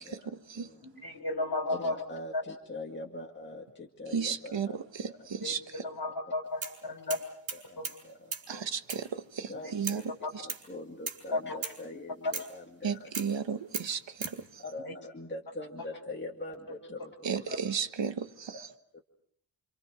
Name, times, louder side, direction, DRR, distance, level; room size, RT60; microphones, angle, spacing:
voice 1, 0.0-0.8 1.7-4.8 5.0-5.5 6.8-7.2 7.5-8.7 9.5-13.1 14.6-17.6 18.5-18.6 18.9-19.0, left 2 dB, 25° left, 0 dB, 2.2 m, -43 dB
voice 2, 0.8-2.0 2.3-2.4 5.4-7.2 7.8-7.9 9.6-9.7 10.2-10.3 11.3-11.6 14.8-14.9 17.5-17.6, left 2 dB, 50° left, 5 dB, 6.4 m, -34 dB
voice 3, 4.1-5.6 8.5-10.0 12.8-14.3 17.2-18.6, right 6 dB, 65° right, 9 dB, 1.4 m, -34 dB
sound 1, 6.6-6.8 7.1-8.0 8.3-8.5 8.9-9.1 9.8-10.1 10.5-10.7 11.1-11.2 11.6-11.8 12.3-12.5 13.1-13.3 13.7-14.4, right 5 dB, 85° right, 4.8 m, -37 dB
29.0 x 27.5 x 4.9 m, 0.66 s
wide cardioid pair, 180°, 47 cm